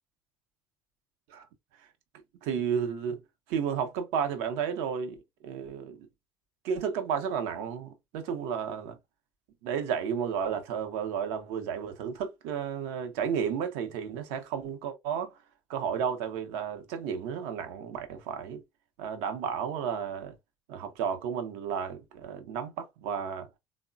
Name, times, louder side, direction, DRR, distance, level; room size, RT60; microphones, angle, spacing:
voice 1, 2.3-3.2 3.5-5.2 5.4-6.1 6.6-9.0 9.6-15.4 15.7-18.6 19.0-20.3 20.7-23.5, right 7 dB, 65° right, 0.6 m, -32 dB
3.6 x 2.0 x 2.3 m
figure-of-eight pair, 55°, 11 cm